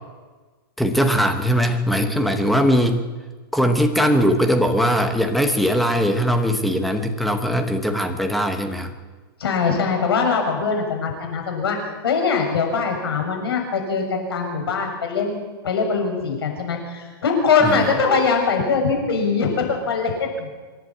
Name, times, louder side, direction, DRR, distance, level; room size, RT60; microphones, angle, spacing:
voice 1, 0.8-3.0 3.5-8.9 17.6-17.8, equal, ahead, 6 dB, 0.9 m, -20 dB
voice 2, 9.4-11.8 12.0-20.5, left 5 dB, 80° left, 3 dB, 7.0 m, -22 dB
26.0 x 11.0 x 9.1 m, 1.4 s
supercardioid pair, 180°, 13 cm